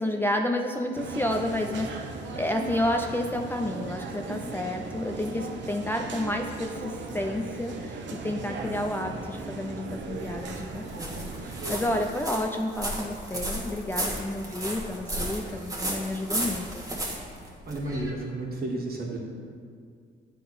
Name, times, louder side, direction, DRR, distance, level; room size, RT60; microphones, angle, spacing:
voice 1, 0.0-16.8, left 1 dB, 10° left, 2 dB, 0.4 m, -30 dB
sound 1, 0.9-12.1, right 4 dB, 65° right, 0.8 m, -37 dB
sound 2, 9.9-18.1, right 1 dB, 15° right, 1.4 m, -34 dB
voice 2, 17.4-19.2, right 2 dB, 50° right, -2 dB, 1.6 m, -32 dB
9.0 x 3.9 x 4.2 m, 2.1 s
cardioid pair, 85°, 20 cm